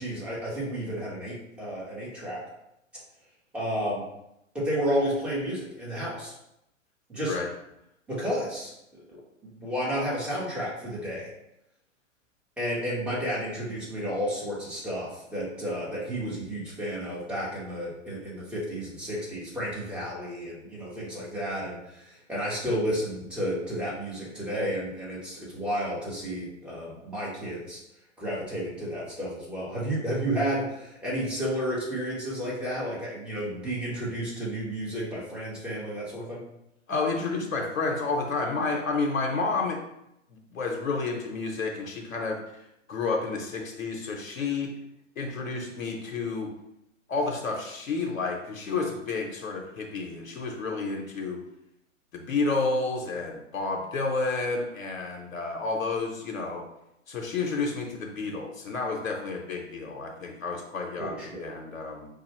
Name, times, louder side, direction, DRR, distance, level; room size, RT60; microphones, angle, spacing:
voice 1, 0.0-2.4 3.5-4.0 4.5-6.3 7.1-7.3 8.1-8.7 9.4-11.3 12.6-27.8 28.2-36.4 61.0-61.5, equal, 5° right, -7 dB, 1.3 m, -31 dB
voice 2, 36.9-39.8 40.3-42.4 42.9-44.7 45.2-46.5 47.1-51.4 52.1-56.6 57.1-62.1, left 3 dB, 90° left, 1 dB, 0.8 m, -30 dB
4.6 x 2.3 x 3.0 m, 0.83 s
hypercardioid pair, 120°, 39 cm